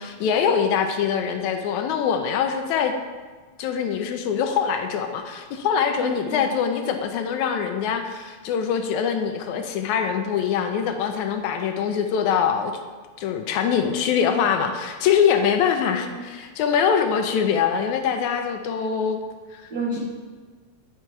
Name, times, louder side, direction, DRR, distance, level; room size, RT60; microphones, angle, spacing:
voice 1, 0.0-3.0 3.6-12.7 13.2-19.2 19.5-19.6, left 7 dB, 80° left, 6 dB, 2.0 m, -23 dB
voice 2, 6.0-6.4 15.8-16.3 19.7-20.0, right 2 dB, 75° right, -3 dB, 0.8 m, -31 dB
9.7 x 5.7 x 4.5 m, 1.4 s
omnidirectional pair, 3.4 m